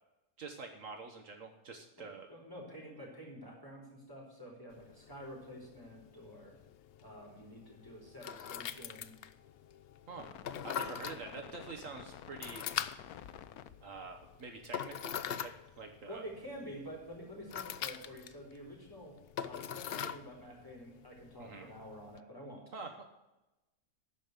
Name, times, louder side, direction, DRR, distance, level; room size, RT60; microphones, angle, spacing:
voice 1, 0.4-2.3 10.1-10.4 10.6-12.6 13.8-16.2 21.4-21.7 22.7-23.0, right 4 dB, 65° right, 4 dB, 1.4 m, -46 dB
voice 2, 2.3-6.5 7.0-9.1 16.1-19.1 19.4-22.6, equal, 15° left, -3 dB, 3.6 m, -49 dB
sound 1, 4.7-22.2, left 9 dB, 65° left, 0.6 m, -44 dB
sound 2, 6.8-13.7, left 10 dB, 85° left, 1.1 m, -53 dB
12.5 x 5.3 x 7.8 m, 1.0 s
omnidirectional pair, 1.5 m